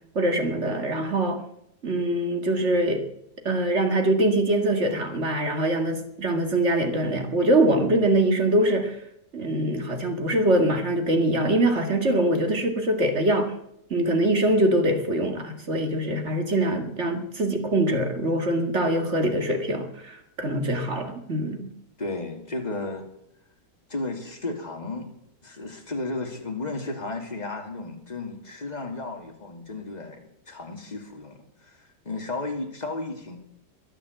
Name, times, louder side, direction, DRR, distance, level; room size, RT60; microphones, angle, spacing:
voice 1, 0.2-1.4 1.8-3.0 3.4-9.0 9.3-13.5 13.9-21.7, right 1 dB, 35° right, 5 dB, 2.3 m, -23 dB
voice 2, 22.0-23.1 23.9-25.1 25.4-33.4, left 2 dB, 20° left, 3 dB, 2.6 m, -34 dB
22.0 x 7.9 x 8.0 m, 0.75 s
omnidirectional pair, 2.0 m